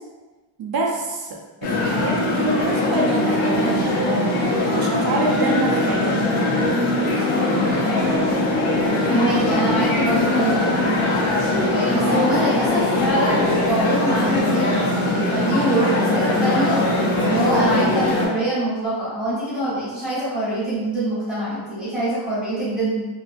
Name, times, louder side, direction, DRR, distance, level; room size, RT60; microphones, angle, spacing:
voice 1, 0.6-6.2, right 3 dB, 50° right, -1 dB, 0.5 m, -26 dB
sound 1, 1.6-18.3, left 2 dB, 85° left, 0.7 m, -21 dB
voice 2, 9.1-10.9 11.7-14.8 15.1-16.8 17.2-23.0, right 1 dB, ahead, -12 dB, 1.1 m, -24 dB
2.6 x 2.3 x 2.5 m, 1.2 s
wide cardioid pair, 160°, 49 cm